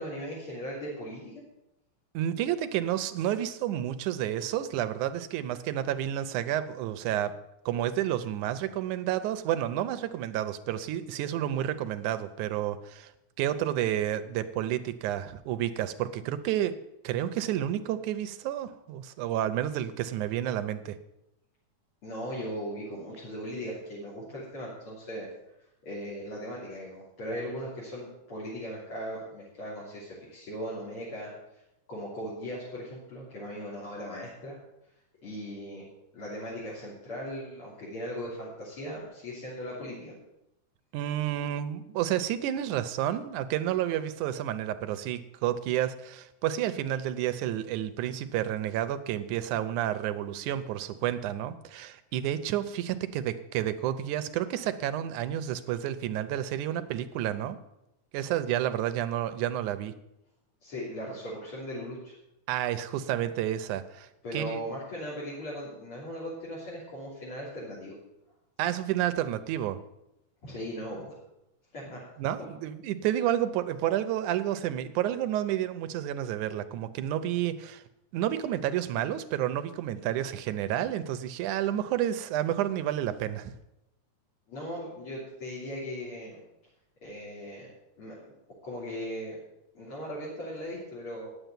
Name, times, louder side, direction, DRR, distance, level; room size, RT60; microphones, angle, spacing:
voice 1, 0.0-1.4 22.0-25.3 25.8-31.3 31.9-34.6 35.2-35.9 36.1-40.2 60.6-62.1 64.2-67.9 70.4-71.2 71.7-72.0 84.5-86.4 87.0-87.7 88.0-88.1 88.6-89.4 89.7-91.3, equal, 45° left, -7 dB, 4.2 m, -38 dB
voice 2, 2.1-7.4 7.7-13.1 13.4-16.8 17.0-21.0 40.9-57.6 58.1-59.9 62.5-64.1 64.3-64.6 68.6-69.8 72.2-77.8 78.1-83.5, right 11 dB, 80° right, 12 dB, 2.2 m, -30 dB
9.8 x 8.1 x 9.0 m, 0.87 s
omnidirectional pair, 3.6 m